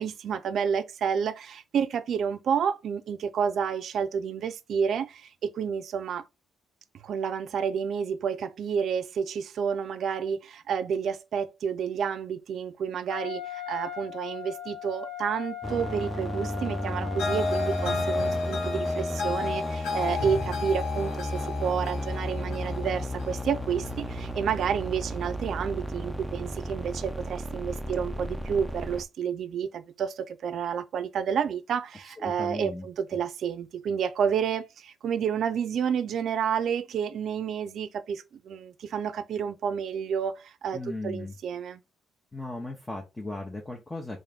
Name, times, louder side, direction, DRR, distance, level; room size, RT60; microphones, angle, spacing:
voice 1, 0.0-6.2 7.0-41.8, right 7 dB, 65° right, 0.5 m, -30 dB
Wind instrument woodwind instrument, 13.1-18.4, left 11 dB, 55° left, 0.9 m, -39 dB
sound 1, 15.6-29.0, equal, 5° right, 0.5 m, -34 dB
sound 2, 17.2-24.3, left 4 dB, 85° left, 0.9 m, -32 dB
voice 2, 32.0-32.9 40.7-41.3 42.3-44.2, left 2 dB, 15° left, 0.8 m, -37 dB
3.6 x 2.5 x 3.5 m
cardioid pair, 90°, 0 cm